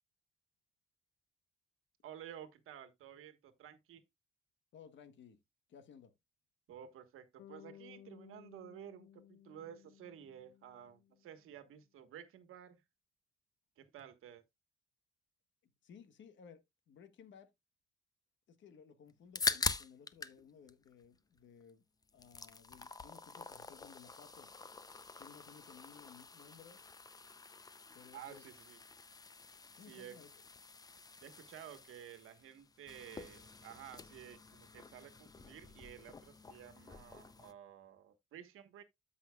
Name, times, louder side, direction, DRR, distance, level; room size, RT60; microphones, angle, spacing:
voice 1, 2.0-4.0 6.7-12.8 13.8-14.4 28.1-28.8 29.9-30.2 31.2-38.8, right 10 dB, 80° right, 1.4 m, -53 dB
voice 2, 4.7-5.4 5.7-6.1 15.6-17.5 18.5-21.8 22.1-24.5 25.2-26.8 27.9-28.4 29.8-30.3, left 7 dB, 60° left, 1.2 m, -58 dB
Bass guitar, 7.4-11.5, left 11 dB, 80° left, 0.5 m, -59 dB
sound 1, 19.1-20.4 20.7-21.7 22.0-37.5, left 4 dB, 20° left, 0.5 m, -45 dB
13.0 x 5.6 x 2.3 m
cardioid pair, 145°, 21 cm